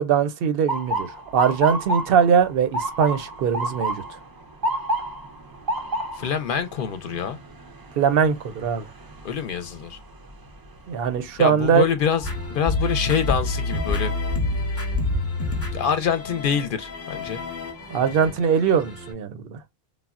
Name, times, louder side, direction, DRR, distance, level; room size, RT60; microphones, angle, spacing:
voice 1, 0.0-4.0 8.0-8.9 10.9-11.8 17.9-19.6, right 7 dB, 70° right, 0.7 m, -21 dB
Motor vehicle (road) / Siren, 0.7-12.6 13.0-13.5 14.2-14.6 16.4-16.7 17.2-17.3 17.7-18.4, right 1 dB, 35° right, 0.3 m, -31 dB
voice 2, 6.1-7.4 9.2-10.0 11.4-14.1 15.7-17.4, left 7 dB, 65° left, 0.6 m, -25 dB
sound 1, 12.2-19.1, left 2 dB, 15° left, 0.7 m, -28 dB
3.4 x 2.1 x 2.3 m
omnidirectional pair, 1.0 m